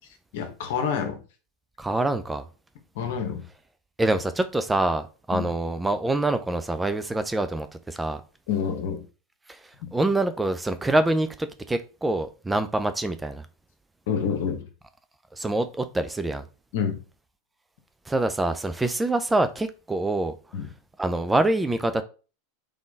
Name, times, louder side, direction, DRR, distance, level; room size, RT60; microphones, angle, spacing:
voice 1, 0.3-1.2 2.9-3.4 5.3-5.5 8.5-9.0 9.8-9.9 14.1-14.6 16.7-17.0 20.5-20.7, left 7 dB, 65° left, 1.2 m, -28 dB
voice 2, 1.8-2.4 4.0-8.2 9.5-9.6 9.9-13.5 15.4-16.4 18.1-20.3 21.0-22.0, right 2 dB, 10° right, 0.5 m, -25 dB
3.7 x 3.7 x 3.6 m
hypercardioid pair, 90°, 0 cm